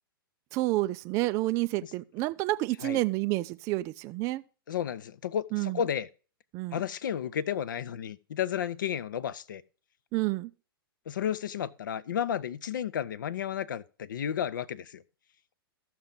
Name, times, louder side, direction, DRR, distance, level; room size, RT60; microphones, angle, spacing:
voice 1, 0.5-4.4 5.5-5.8 6.5-6.8 10.1-10.5, right 18 dB, 25° right, 0.3 m, -29 dB
voice 2, 4.7-6.1 6.7-9.6 11.1-15.0, left 9 dB, 55° left, 0.6 m, -32 dB
15.0 x 6.0 x 3.7 m
figure-of-eight pair, 110°, 13 cm